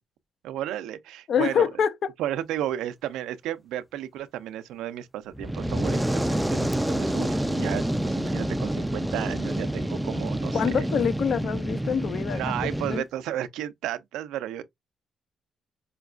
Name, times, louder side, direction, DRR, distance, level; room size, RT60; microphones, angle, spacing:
voice 1, 0.4-1.7 2.2-10.9 12.3-14.6, right 12 dB, 90° right, 0.4 m, -33 dB
voice 2, 1.3-2.1 10.5-12.6 12.9-13.0, left 7 dB, 60° left, 0.5 m, -25 dB
Fire, 5.3-13.0, right 1 dB, 5° right, 0.3 m, -28 dB
5.0 x 2.3 x 2.3 m
cardioid pair, 90°, 0 cm